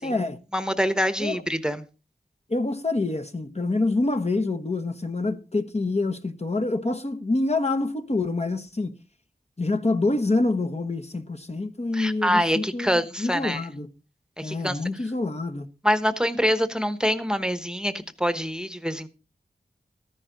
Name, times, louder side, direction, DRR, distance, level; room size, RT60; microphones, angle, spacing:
voice 1, 0.0-0.4 1.2-1.4 2.5-8.9 9.6-13.9 14.4-15.7, left 2 dB, 40° left, 1.1 m, -26 dB
voice 2, 0.5-1.8 11.9-13.6 14.4-14.8 15.8-17.9 18.2-19.1, equal, 5° right, 1.1 m, -25 dB
14.0 x 11.0 x 3.9 m
wide cardioid pair, 60°, 17 cm